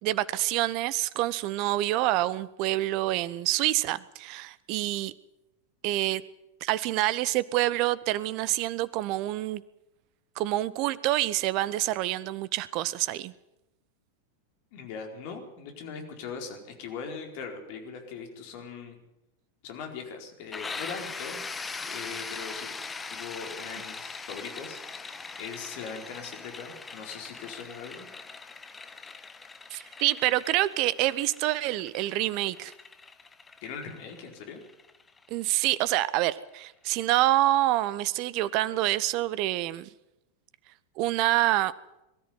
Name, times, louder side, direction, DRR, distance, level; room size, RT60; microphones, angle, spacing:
voice 1, 0.0-5.1 5.8-6.2 6.6-9.6 10.4-13.3 29.7-32.7 35.3-39.9 41.0-41.7, right 16 dB, 40° right, 19 dB, 1.0 m, -27 dB
voice 2, 14.7-19.0 19.6-21.4 21.9-22.8 23.1-28.1 33.6-34.6, left 5 dB, 45° left, 4 dB, 4.5 m, -40 dB
sound 1, 20.5-36.1, left 4 dB, 15° left, 1.3 m, -41 dB
22.5 x 13.5 x 9.6 m, 0.90 s
figure-of-eight pair, 90°, 0 cm